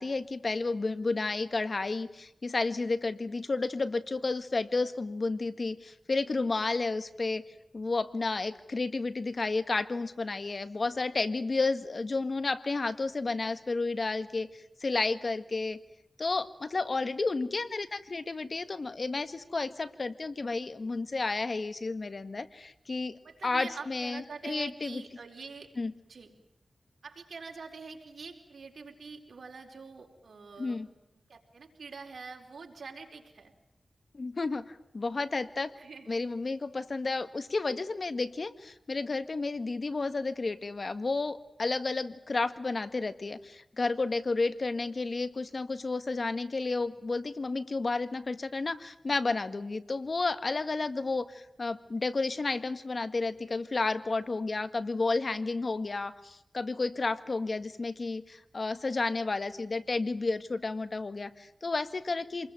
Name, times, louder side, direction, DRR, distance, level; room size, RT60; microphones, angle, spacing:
voice 1, 0.0-7.4 7.7-15.8 16.2-25.0 25.8-25.9 30.6-30.9 34.1-35.7 36.1-62.5, left 3 dB, 55° left, 12 dB, 1.7 m, -32 dB
voice 2, 23.2-25.7 26.0-26.3 27.0-30.8 31.3-33.5 35.7-36.3, right 4 dB, 80° right, 3 dB, 4.7 m, -45 dB
27.5 x 21.0 x 9.1 m, 0.84 s
wide cardioid pair, 60°, 0 cm